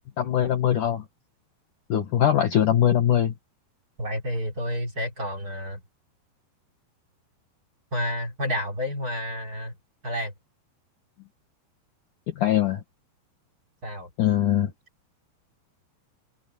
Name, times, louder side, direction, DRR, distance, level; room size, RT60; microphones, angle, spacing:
voice 1, 0.2-1.0 1.9-3.3 12.4-12.8 14.2-14.7, left 10 dB, 60° left, 2.4 m, -21 dB
voice 2, 4.0-5.8 7.9-9.8 10.0-10.3 13.8-14.1, equal, 20° right, 3.8 m, -30 dB
omnidirectional pair, 5.1 m